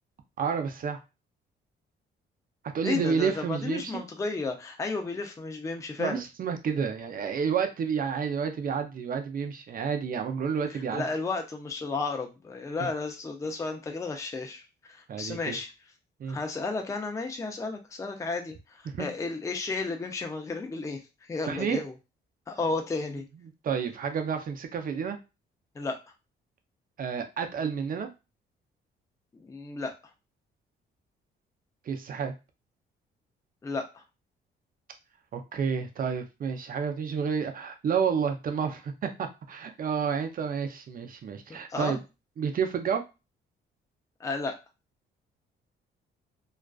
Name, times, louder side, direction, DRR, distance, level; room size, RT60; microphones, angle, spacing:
voice 1, 0.4-1.0 2.6-3.9 6.0-11.0 12.8-12.9 15.1-15.6 16.2-16.4 18.9-19.1 21.5-21.8 23.6-25.2 27.0-28.1 31.8-32.3 35.3-42.0 42.4-43.0, right 6 dB, 45° right, 6 dB, 0.5 m, -30 dB
voice 2, 2.8-6.2 10.9-15.7 16.3-21.9 22.5-23.3 25.8-26.0 29.3-29.9 33.6-34.0 41.5-42.0 44.2-44.6, left 3 dB, 15° left, 4 dB, 0.4 m, -33 dB
2.3 x 2.3 x 2.3 m, 0.27 s
cardioid pair, 90°, 20 cm